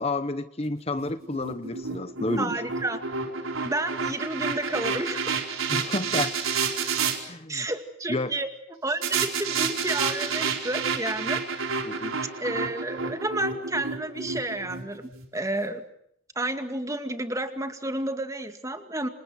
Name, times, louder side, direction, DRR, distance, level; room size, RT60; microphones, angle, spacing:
voice 1, 0.0-2.6 5.7-6.3 7.3-7.7 8.1-8.3 11.8-12.2, left 2 dB, 30° left, 11 dB, 1.0 m, -30 dB
sound 1, 1.0-7.2 9.0-15.2, right 5 dB, 85° right, 4.6 m, -30 dB
voice 2, 2.4-3.0 3.6-5.3 7.5-8.5 8.8-11.4 12.4-15.8 16.4-19.1, right 2 dB, 15° right, 7 dB, 2.2 m, -31 dB
29.5 x 27.0 x 6.4 m, 0.72 s
head